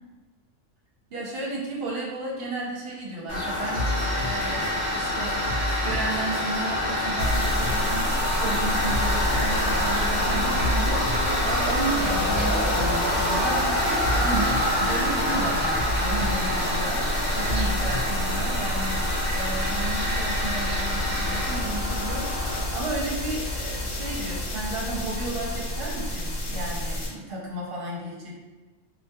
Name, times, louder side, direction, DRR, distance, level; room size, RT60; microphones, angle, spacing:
voice 1, 1.1-3.9 4.2-5.4 5.7-28.3, right 2 dB, 60° right, -3 dB, 0.8 m, -33 dB
Tools, 3.3-22.6, left 1 dB, 25° left, 0.6 m, -27 dB
sound 1, 3.4-19.2, left 1 dB, 60° left, 0.7 m, -33 dB
sound 2, 7.2-27.1, left 1 dB, 80° left, 1.0 m, -30 dB
2.4 x 2.2 x 2.6 m, 1.2 s
omnidirectional pair, 1.3 m